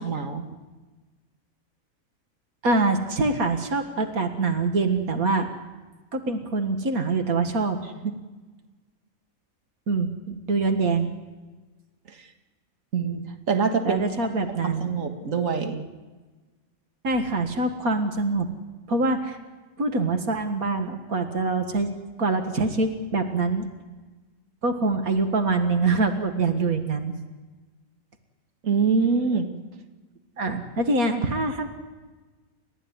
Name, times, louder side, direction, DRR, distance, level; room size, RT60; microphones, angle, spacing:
voice 1, 0.0-0.5 8.0-8.1 12.1-12.3 12.9-14.0 14.5-15.9 28.6-29.5, right 5 dB, 65° right, 5 dB, 2.1 m, -25 dB
voice 2, 2.6-5.5 6.1-7.8 9.9-11.1 13.8-15.0 17.0-18.5 18.9-19.4 19.8-21.9 22.2-23.7 24.6-27.1 30.4-31.7, right 3 dB, 90° right, 6 dB, 2.2 m, -24 dB
30.0 x 14.5 x 9.6 m, 1.3 s
omnidirectional pair, 1.5 m